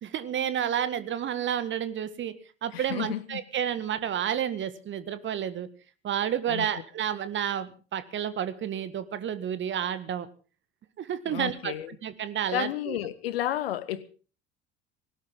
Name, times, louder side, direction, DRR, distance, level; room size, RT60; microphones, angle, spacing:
voice 1, 0.0-2.3 2.6-5.7 6.0-10.3 11.0-11.7 12.0-13.0, right 9 dB, 35° right, 1.8 m, -30 dB
voice 2, 2.7-3.4 6.5-6.7 11.3-11.9 12.5-14.0, left 12 dB, 70° left, 1.6 m, -32 dB
20.5 x 18.0 x 3.8 m
figure-of-eight pair, 65°, 31 cm